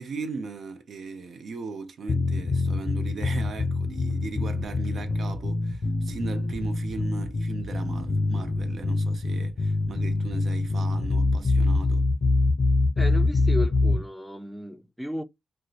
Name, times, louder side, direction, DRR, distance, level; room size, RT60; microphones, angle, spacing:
voice 1, 0.0-12.1, right 4 dB, 70° right, 0.5 m, -38 dB
sound 1, 2.1-14.0, left 2 dB, 55° left, 0.5 m, -25 dB
sound 2, 3.9-5.0 5.8-6.9 7.8-8.9 9.8-10.4 11.1-11.7, right 1 dB, 45° right, 1.1 m, -42 dB
voice 2, 13.0-15.2, left 1 dB, ahead, 0.4 m, -34 dB
2.6 x 2.0 x 2.4 m
cardioid pair, 65°, 0 cm